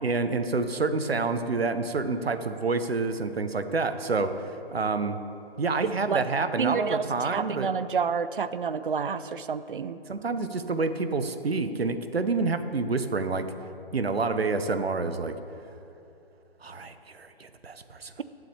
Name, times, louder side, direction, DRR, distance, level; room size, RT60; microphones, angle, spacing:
voice 1, 0.0-4.4 4.7-5.2 5.6-7.7 10.1-13.5 13.9-15.4 16.6-18.1, right 3 dB, 75° right, 9 dB, 0.9 m, -28 dB
voice 2, 5.8-6.2 6.6-10.0, right 6 dB, 60° right, 13 dB, 0.6 m, -29 dB
21.5 x 7.5 x 3.4 m, 2.7 s
figure-of-eight pair, 145°, 31 cm